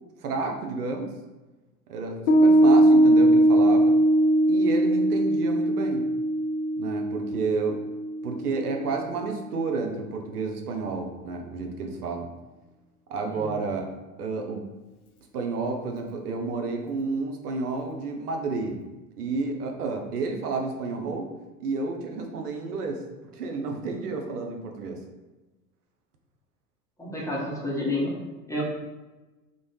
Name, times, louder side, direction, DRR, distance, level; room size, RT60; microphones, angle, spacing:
voice 1, 0.2-1.1 1.9-4.0 4.5-6.1 6.8-7.8 8.2-12.3 13.1-13.9 14.2-14.7 15.3-18.8 19.2-21.3 21.6-23.0 23.3-25.0, right 4 dB, 85° right, 3 dB, 0.5 m, -30 dB
Piano, 2.3-9.0, right 1 dB, 75° left, 0.6 m, -20 dB
voice 2, 27.0-28.1 28.5-28.6, left 1 dB, 5° left, -5 dB, 0.7 m, -29 dB
2.5 x 2.0 x 3.1 m, 1.1 s
figure-of-eight pair, 80°, 44 cm